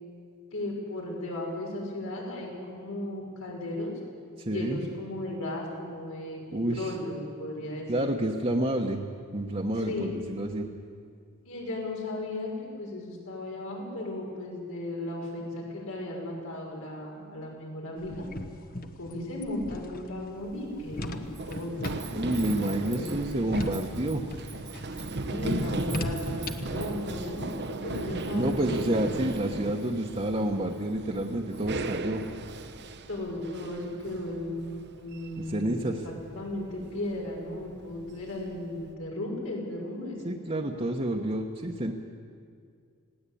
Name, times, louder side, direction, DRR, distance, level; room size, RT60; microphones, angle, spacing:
voice 1, 0.5-3.9 4.4-8.1 9.8-10.1 11.4-12.5 12.8-18.1 19.0-21.2 21.5-23.1 25.2-27.5 27.8-29.0 33.1-34.7 35.0-40.2, left 1 dB, 80° left, -1 dB, 6.2 m, -36 dB
voice 2, 4.4-4.8 6.5-7.0 7.9-9.0 9.3-10.7 22.1-24.2 28.3-32.2 35.4-36.0 40.2-41.9, right 1 dB, 30° right, 0 dB, 1.2 m, -29 dB
sound 1, 18.0-26.8, left 2 dB, 45° left, 1.2 m, -39 dB
Run, 20.4-38.9, right 2 dB, 50° right, 1.0 m, -37 dB
20.5 x 17.5 x 8.6 m, 2.2 s
head